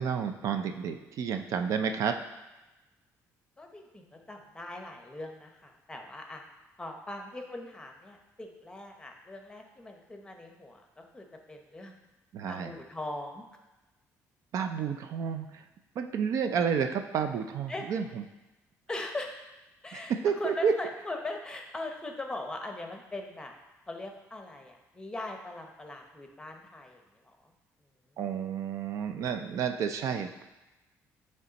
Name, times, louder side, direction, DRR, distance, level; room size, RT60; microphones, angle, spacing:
voice 1, 0.0-2.2 12.3-12.7 14.5-15.6 16.0-18.0 19.9-20.7 28.2-30.4, right 7 dB, 65° right, 7 dB, 0.4 m, -30 dB
voice 2, 3.6-6.4 6.8-12.0 12.5-13.4 17.7-17.8 18.9-19.5 19.8-23.5 23.9-27.5, left 2 dB, 15° left, 3 dB, 0.8 m, -40 dB
8.2 x 3.4 x 4.0 m, 1.1 s
cardioid pair, 115°, 6 cm